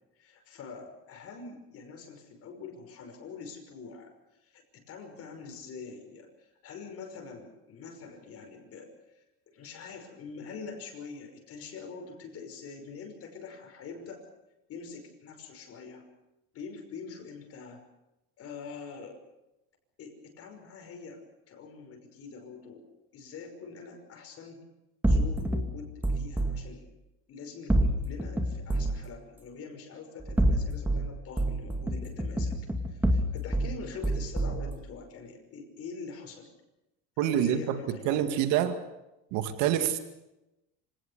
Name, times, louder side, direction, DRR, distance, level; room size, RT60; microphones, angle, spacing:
voice 1, 0.2-4.1 4.4-8.9 9.5-14.3 14.7-16.1 16.5-17.8 18.4-19.2 20.0-22.8 23.1-24.6 25.0-26.8 27.3-32.5 32.9-36.5 37.2-38.4, left 5 dB, 50° left, 3 dB, 5.8 m, -44 dB
sound 1, 25.0-26.5 27.7-29.0 30.2-31.0 31.4-33.7 34.0-34.7, right 1 dB, 5° right, 2.5 m, -27 dB
voice 2, 37.2-37.8 38.1-38.8 39.3-40.0, right 10 dB, 70° right, 8 dB, 2.1 m, -26 dB
26.0 x 18.0 x 6.8 m, 0.93 s
cardioid pair, 120°, 30 cm